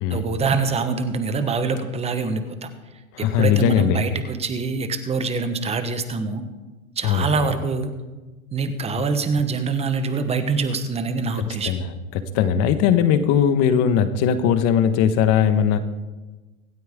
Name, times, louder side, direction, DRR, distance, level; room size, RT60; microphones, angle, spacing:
voice 1, 0.1-2.7 3.2-6.4 7.0-7.9 8.5-11.7, right 4 dB, 15° right, 9 dB, 1.2 m, -25 dB
voice 2, 3.1-4.0 7.0-7.4 9.0-9.1 11.6-15.8, left 8 dB, 35° left, 10 dB, 1.3 m, -19 dB
25.0 x 9.3 x 3.7 m, 1.2 s
hypercardioid pair, 120°, 42 cm